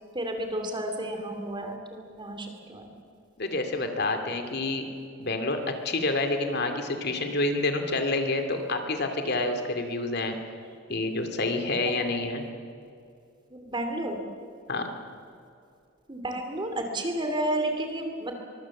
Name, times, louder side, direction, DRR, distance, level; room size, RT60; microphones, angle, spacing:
voice 1, 0.1-2.9 11.9-12.0 13.5-14.2 16.1-18.4, right 1 dB, 25° right, 4 dB, 2.8 m, -31 dB
voice 2, 3.4-4.9 5.2-10.4 10.9-12.4 14.7-14.9, left 2 dB, 55° left, 6 dB, 2.6 m, -28 dB
24.0 x 23.0 x 7.3 m, 2.4 s
head